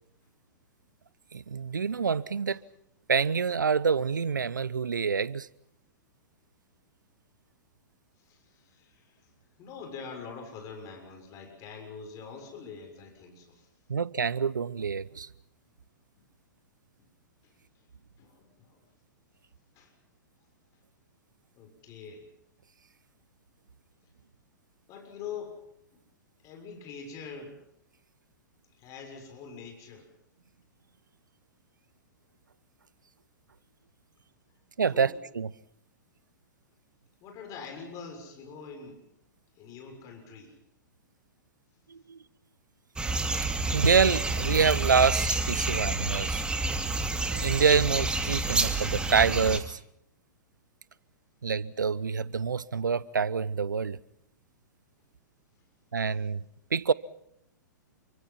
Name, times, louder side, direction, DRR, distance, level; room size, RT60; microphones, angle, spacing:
voice 1, 1.3-2.6 3.1-5.5 13.9-15.3 34.8-35.5 41.9-42.2 43.7-46.4 47.3-49.8 51.4-54.0 55.9-56.4 56.7-56.9, right 6 dB, 80° right, 0.9 m, -26 dB
voice 2, 8.2-9.3 9.6-13.7 18.2-18.8 19.7-19.9 21.5-22.2 24.9-25.6 26.4-27.6 28.8-30.1 34.9-35.1 37.2-39.0 39.6-40.5, left 5 dB, 35° left, 6.8 m, -44 dB
sound 1, 43.0-49.6, right 3 dB, 10° right, 2.5 m, -29 dB
28.0 x 24.5 x 5.8 m
figure-of-eight pair, 110°, 10 cm